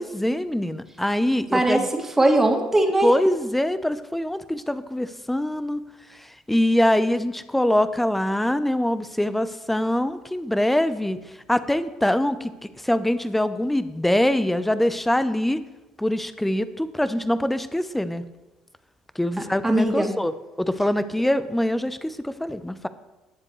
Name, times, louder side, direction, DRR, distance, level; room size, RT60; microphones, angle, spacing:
voice 1, 0.0-1.9 3.0-5.8 6.2-11.2 11.5-12.5 12.8-15.6 16.0-18.2 19.2-20.3 20.6-22.9, left 1 dB, 5° left, 13 dB, 0.8 m, -23 dB
voice 2, 2.2-3.1 19.6-20.1, right 1 dB, 15° right, 1 dB, 2.4 m, -19 dB
19.5 x 7.5 x 3.3 m, 1.1 s
hypercardioid pair, 55°, 2 cm